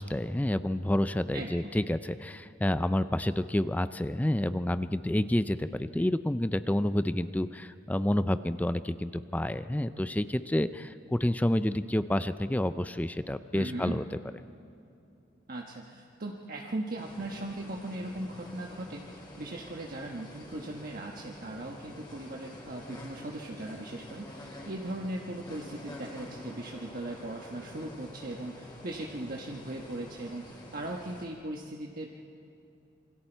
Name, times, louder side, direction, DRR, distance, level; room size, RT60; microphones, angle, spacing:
voice 1, 0.0-14.0, left 1 dB, 10° left, 12 dB, 0.4 m, -29 dB
voice 2, 1.3-1.8 13.5-14.0 15.5-32.1, right 1 dB, 50° right, 0 dB, 1.3 m, -39 dB
sound 1, 17.0-31.3, left 1 dB, 25° left, 4.5 m, -47 dB
27.5 x 24.0 x 4.5 m, 2.7 s
head